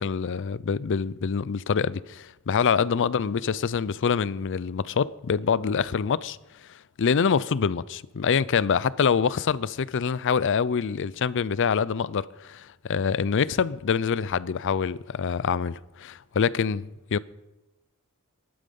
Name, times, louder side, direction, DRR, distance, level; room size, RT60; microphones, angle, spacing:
voice 1, 0.0-6.4 7.0-17.2, left 6 dB, 55° left, 0.5 m, -25 dB
17.0 x 11.5 x 5.4 m
head